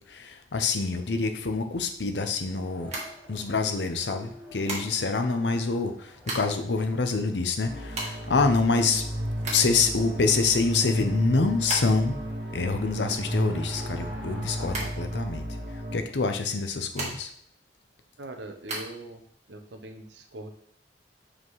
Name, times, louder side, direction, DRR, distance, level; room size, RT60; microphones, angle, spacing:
voice 1, 0.1-2.9 3.3-9.0 9.5-12.2 12.5-15.5 15.9-17.3, left 4 dB, 75° left, 6 dB, 0.7 m, -26 dB
Race car auto racing, 2.4-14.8, left 1 dB, 5° right, 1.8 m, -50 dB
sound 1, 2.9-3.8 4.7-5.3 5.9-6.7 7.0-7.1 7.3-9.9 10.3-12.2 12.5-14.3 14.7-15.7 16.5-17.5 17.9-18.8, right 2 dB, 40° right, 1.7 m, -36 dB
sound 2, 7.6-16.0, equal, 65° right, 1.5 m, -33 dB
voice 2, 18.2-19.2 19.5-20.5, right 1 dB, 80° right, 5 dB, 0.9 m, -41 dB
7.4 x 4.9 x 3.2 m, 0.63 s
head